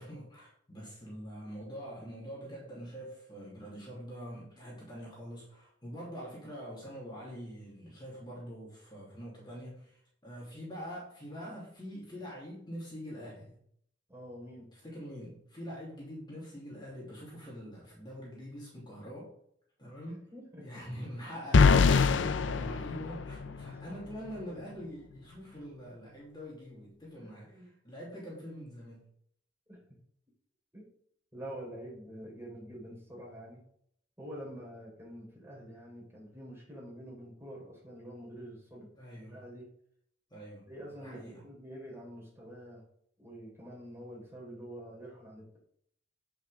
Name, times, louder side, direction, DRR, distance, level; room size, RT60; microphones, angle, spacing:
voice 1, 0.0-13.6 14.7-19.3 19.8-20.3 20.6-29.0 38.9-39.4 40.3-41.4, equal, 25° left, -5 dB, 3.1 m, -44 dB
voice 2, 14.1-14.7 20.3-20.8 21.3-21.4 23.4-23.8 27.1-27.7 29.7-29.8 30.7-30.9 31.3-33.6 34.2-38.9 39.2-39.7 40.7-42.8 43.2-45.6, equal, 15° right, -4 dB, 4.3 m, -47 dB
sound 1, 21.5-23.7, left 5 dB, 75° left, 0.5 m, -23 dB
9.4 x 6.0 x 5.1 m, 0.67 s
head